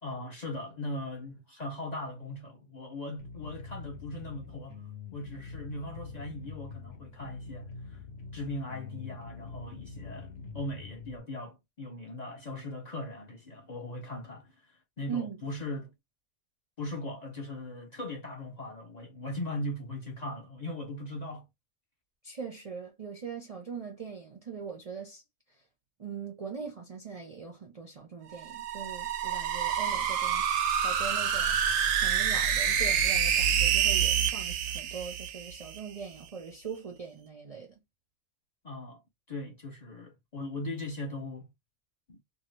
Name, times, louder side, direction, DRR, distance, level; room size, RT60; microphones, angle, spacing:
voice 1, 0.0-8.0 8.3-14.5 15.0-15.9 16.8-21.5 38.6-39.0 39.3-41.5 42.1-42.2, left 1 dB, 45° left, 0.6 m, -39 dB
sound 1, 3.2-11.2, left 4 dB, 60° left, 0.9 m, -45 dB
voice 2, 15.1-15.4 22.2-25.2 26.0-30.4 30.8-31.6 32.0-37.8, right 6 dB, 45° right, 0.5 m, -41 dB
sound 2, 28.3-35.8, right 8 dB, 85° right, 1.0 m, -27 dB
2.7 x 2.4 x 3.1 m
omnidirectional pair, 1.3 m